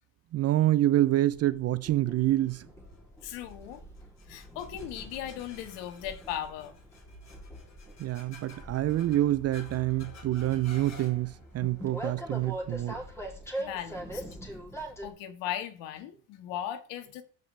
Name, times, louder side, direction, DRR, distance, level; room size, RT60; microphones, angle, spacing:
voice 1, 0.3-2.7 8.0-13.0, right 14 dB, 35° right, 0.5 m, -27 dB
Train, 1.3-15.1, right 1 dB, 5° left, 3.0 m, -43 dB
sound 1, 2.5-13.8, left 2 dB, 35° left, 3.4 m, -52 dB
voice 2, 3.2-3.8 4.3-6.8 13.6-14.2 15.0-17.2, left 11 dB, 65° left, 1.8 m, -37 dB
14.0 x 5.4 x 3.3 m
supercardioid pair, 95°, 47 cm